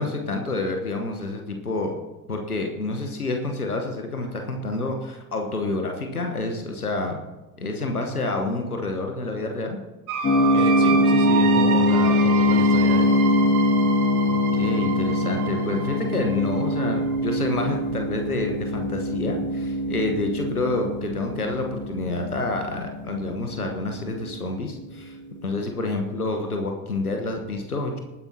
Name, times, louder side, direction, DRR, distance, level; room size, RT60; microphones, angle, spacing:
voice 1, 0.0-1.9 2.3-7.2 7.6-9.8 14.2-28.0, left 2 dB, 90° left, 3 dB, 1.1 m, -28 dB
sound 1, 10.1-17.7, right 7 dB, 70° right, 1.7 m, -30 dB
sound 2, 10.2-25.0, left 1 dB, 25° left, 1.6 m, -23 dB
voice 2, 10.5-13.1, right 1 dB, 10° right, -3 dB, 3.4 m, -32 dB
19.5 x 10.0 x 2.8 m, 1.1 s
figure-of-eight pair, 65°, 44 cm